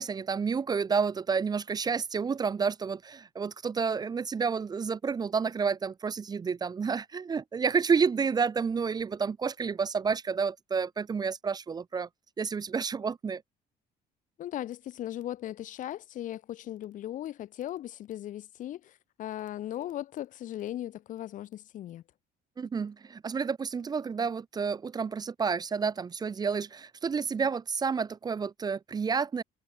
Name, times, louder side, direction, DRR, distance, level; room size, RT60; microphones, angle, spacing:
voice 1, 0.0-12.1 12.4-13.4 22.6-29.4, right 5 dB, 25° right, 0.4 m, -30 dB
voice 2, 14.4-22.0, left 12 dB, 50° left, 0.5 m, -38 dB
cardioid pair, 110°, 17 cm